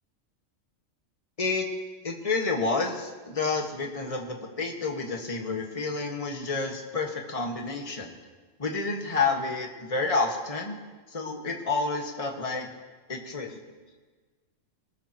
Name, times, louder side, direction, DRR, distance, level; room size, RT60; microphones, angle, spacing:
voice 1, 2.0-8.2 8.6-10.8 11.1-12.7 13.1-13.6, left 3 dB, 25° left, 1 dB, 1.7 m, -29 dB
24.0 x 20.0 x 3.0 m, 1.4 s
omnidirectional pair, 1.4 m